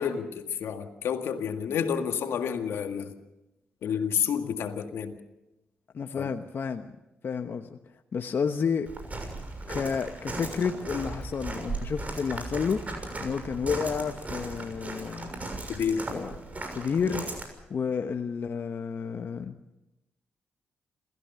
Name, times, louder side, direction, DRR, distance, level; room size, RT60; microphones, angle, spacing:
voice 1, 0.0-3.1 3.8-5.2 6.2-6.3 15.7-16.1, left 7 dB, 80° left, 6 dB, 1.9 m, -29 dB
voice 2, 5.9-6.9 7.2-7.8 8.1-8.9 9.7-12.8 13.2-15.3 16.1-16.4 16.7-17.2 17.7-19.5, left 6 dB, 60° left, 6 dB, 1.1 m, -30 dB
Walk footsteps, 8.9-17.4, right 2 dB, 35° right, 6.5 m, -37 dB
28.0 x 15.0 x 7.0 m, 0.95 s
cardioid pair, 60°, 4 cm